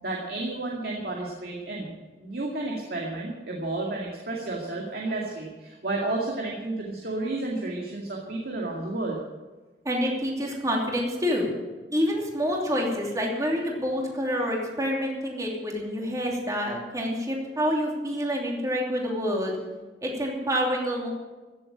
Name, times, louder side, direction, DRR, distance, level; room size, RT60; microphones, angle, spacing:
voice 1, 0.0-1.9 2.2-9.2, right 2 dB, 60° right, -2 dB, 2.2 m, -31 dB
voice 2, 9.8-11.5 11.9-19.6 20.0-21.1, equal, 20° right, -1 dB, 2.9 m, -27 dB
15.5 x 7.8 x 8.7 m, 1.2 s
head